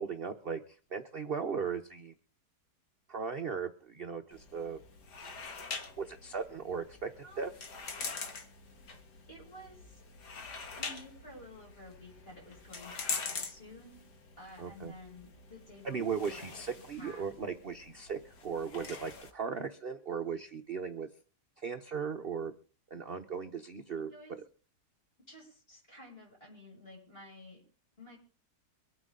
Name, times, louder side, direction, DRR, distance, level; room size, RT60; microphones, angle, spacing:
voice 1, 0.0-2.1 3.1-4.8 6.0-7.1 7.4-7.5 14.6-14.9 15.8-21.1 21.6-22.5 22.9-24.1, right 6 dB, 40° right, 5 dB, 0.9 m, -37 dB
sound 1, 4.3-19.3, left 4 dB, 75° left, 2.1 m, -44 dB
voice 2, 7.2-7.6 9.3-10.0 10.8-14.0 14.4-16.5 16.9-17.3 24.1-24.4 25.3-27.6 28.0-28.2, left 1 dB, 35° left, -2 dB, 7.2 m, -52 dB
24.0 x 9.5 x 3.8 m, 0.37 s
omnidirectional pair, 1.8 m